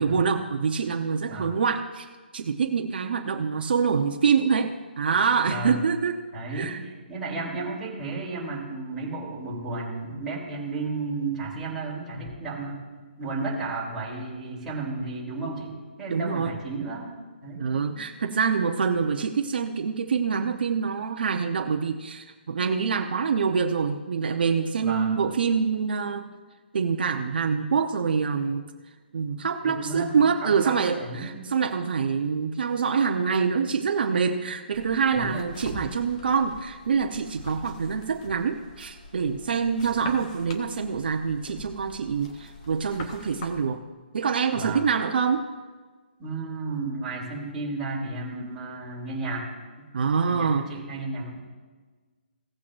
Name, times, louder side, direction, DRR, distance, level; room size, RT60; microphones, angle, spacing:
voice 1, 0.0-6.2 6.5-6.8 16.1-16.5 17.6-26.3 26.7-28.7 29.1-43.8 44.1-45.4 49.9-50.7, right 6 dB, 60° right, 4 dB, 0.9 m, -25 dB
voice 2, 5.4-5.8 6.3-12.8 13.2-17.1 17.4-17.7 18.0-18.1 24.8-25.2 29.6-31.4 35.1-35.5 44.5-44.9 46.2-49.5 49.8-49.9 50.2-51.5, right 3 dB, 10° right, -7 dB, 3.3 m, -33 dB
sound 1, 34.7-43.6, left 3 dB, 35° left, 1.5 m, -44 dB
17.5 x 8.4 x 2.6 m, 1.4 s
hypercardioid pair, 160°, 6 cm